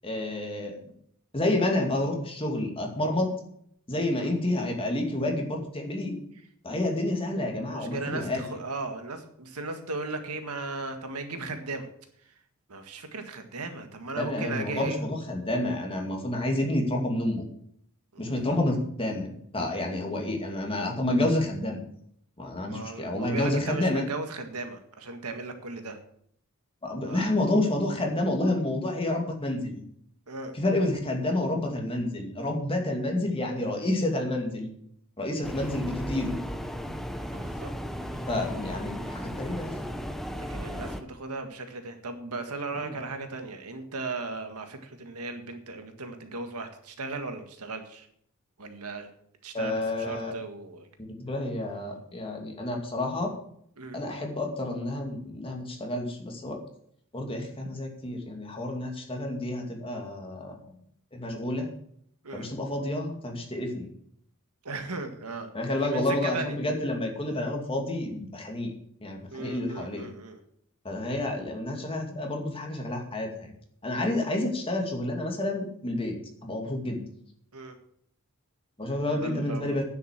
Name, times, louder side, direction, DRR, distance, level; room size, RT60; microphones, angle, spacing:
voice 1, 0.0-0.7 1.3-3.3 3.9-6.1 6.6-8.4 14.2-17.5 18.2-21.8 22.4-24.0 26.8-29.8 30.5-34.7 35.2-36.4 38.3-39.7 42.7-42.9 49.5-50.3 51.2-53.3 53.9-56.6 57.1-60.6 61.1-61.7 62.3-63.9 65.5-68.7 69.0-70.1 70.8-73.5 73.8-76.2 76.4-77.0 78.8-79.8, left 1 dB, 25° left, 1 dB, 2.5 m, -29 dB
voice 2, 7.7-11.9 12.3-12.4 12.7-15.1 18.1-18.6 22.7-26.0 27.0-27.3 30.3-30.6 37.3-37.7 38.1-38.2 38.5-38.6 40.4-48.1 48.6-49.1 49.4-50.9 53.8-54.0 62.2-62.5 64.6-66.6 69.3-70.4 77.5-77.8 79.0-79.8, right 3 dB, 85° right, 7 dB, 1.8 m, -37 dB
sound 1, 35.4-41.0, equal, ahead, 0.8 m, -35 dB
9.6 x 8.0 x 7.4 m, 0.67 s
head